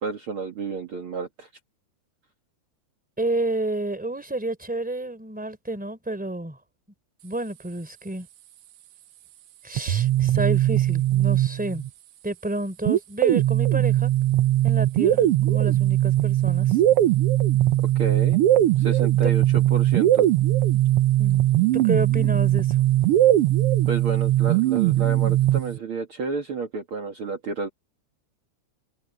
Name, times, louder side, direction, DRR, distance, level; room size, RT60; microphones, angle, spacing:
voice 1, 0.0-1.5 17.8-18.4 18.8-20.3 23.9-27.7, right 4 dB, 45° right, 2.5 m, -30 dB
voice 2, 3.2-6.6 7.2-8.3 9.6-11.9 12.2-14.1 14.6-16.8 19.2-19.3 21.2-22.8, right 2 dB, 5° right, 3.6 m, -30 dB
sound 1, 9.8-11.9 12.9-25.8, right 14 dB, 70° right, 1.4 m, -20 dB
omnidirectional pair, 3.5 m